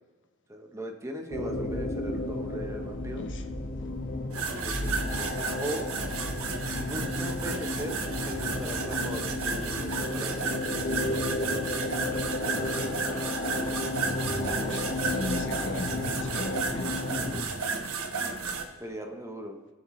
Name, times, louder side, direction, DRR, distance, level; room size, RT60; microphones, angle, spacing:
voice 1, 0.5-3.2 4.6-5.3 5.6-5.9 6.7-10.6 18.8-19.6, equal, 15° right, 3 dB, 0.9 m, -39 dB
sound 1, 1.3-17.4, left 2 dB, 40° left, 1.5 m, -32 dB
sound 2, 4.3-18.6, right 5 dB, 75° right, 1.2 m, -33 dB
voice 2, 14.5-17.0, left 2 dB, 55° left, 5 dB, 1.1 m, -38 dB
21.0 x 7.4 x 3.2 m, 1.2 s
head